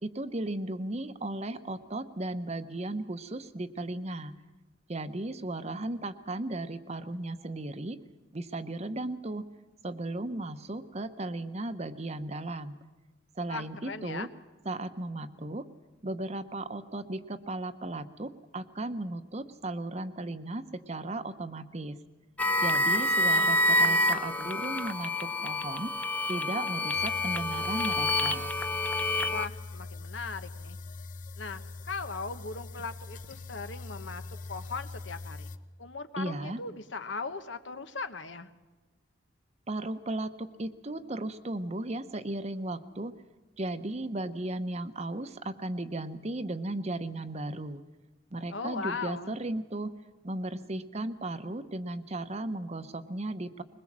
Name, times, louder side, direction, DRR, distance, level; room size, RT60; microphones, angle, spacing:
voice 1, 0.0-4.3 4.9-8.0 8.3-9.5 9.8-12.8 13.4-14.3 14.6-15.6 16.0-22.0 22.6-25.9 26.3-28.5 36.2-36.6 39.7-43.1 43.6-47.8 48.3-49.9 50.2-53.6, right 2 dB, 35° right, 11 dB, 0.9 m, -35 dB
voice 2, 13.5-14.3 29.3-30.8 31.4-35.5 35.8-38.5 48.5-49.4, left 4 dB, 75° left, 10 dB, 1.2 m, -38 dB
sound 1, 22.4-29.5, left 1 dB, 10° left, 0.7 m, -27 dB
sound 2, 26.9-35.6, left 3 dB, 45° left, 0.8 m, -42 dB
21.5 x 21.0 x 7.4 m, 1.2 s
head